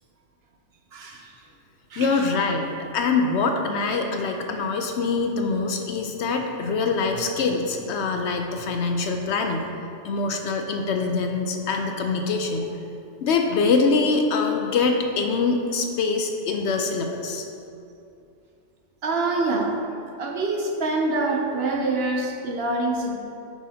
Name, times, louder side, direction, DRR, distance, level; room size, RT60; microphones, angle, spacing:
voice 1, 0.9-1.3 1.9-2.2 19.0-19.8 20.2-23.2, right 2 dB, 60° right, 2 dB, 0.8 m, -25 dB
voice 2, 2.0-9.7 10.0-12.7 13.2-17.4, left 4 dB, 65° left, 4 dB, 0.8 m, -24 dB
8.6 x 6.2 x 2.7 m, 2.6 s
omnidirectional pair, 1.3 m